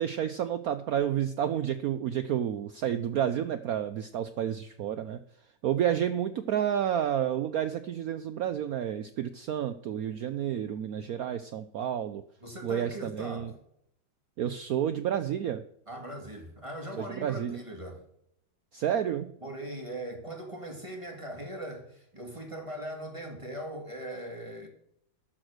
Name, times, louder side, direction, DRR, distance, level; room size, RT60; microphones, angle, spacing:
voice 1, 0.0-5.2 5.6-12.2 12.6-13.5 14.4-15.6 17.0-17.6 18.7-19.3, right 10 dB, 85° right, 0.8 m, -30 dB
voice 2, 12.4-13.5 15.9-18.0 19.4-24.7, right 1 dB, 15° right, 2.1 m, -40 dB
12.0 x 6.2 x 6.5 m
omnidirectional pair, 2.2 m